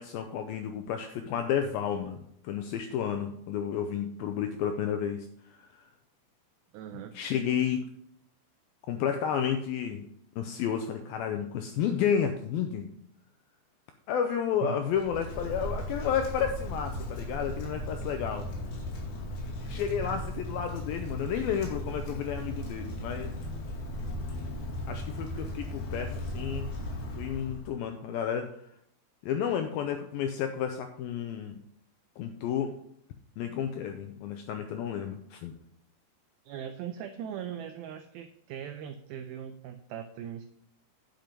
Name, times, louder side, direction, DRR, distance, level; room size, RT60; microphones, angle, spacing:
voice 1, 0.0-5.7 6.9-7.9 8.9-10.1 10.4-12.9 14.1-18.5 19.7-23.3 24.9-26.7 27.1-28.5 29.2-31.6 32.2-32.7 33.4-35.6, left 8 dB, 85° left, 6 dB, 2.1 m, -31 dB
voice 2, 6.7-7.2 14.6-14.8 36.4-40.5, right 9 dB, 90° right, 8 dB, 2.1 m, -39 dB
Wind, 14.9-27.7, left 1 dB, 65° left, 4.1 m, -37 dB
10.5 x 6.0 x 5.2 m, 0.69 s
omnidirectional pair, 4.9 m